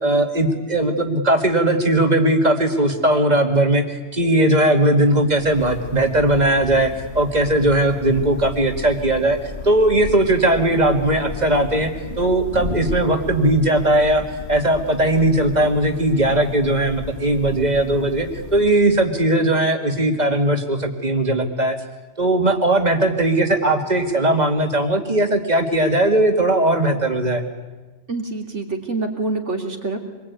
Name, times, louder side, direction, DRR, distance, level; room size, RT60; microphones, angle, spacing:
voice 1, 0.0-9.4 9.6-11.9 12.2-14.2 14.5-21.8 22.2-27.4, right 1 dB, 35° right, 5 dB, 2.5 m, -18 dB
Thunder / Rain, 4.9-19.3, left 3 dB, 65° left, 2.9 m, -35 dB
voice 2, 28.1-30.0, right 3 dB, 90° right, 3 dB, 3.5 m, -26 dB
26.0 x 21.0 x 9.6 m, 1.2 s
omnidirectional pair, 1.2 m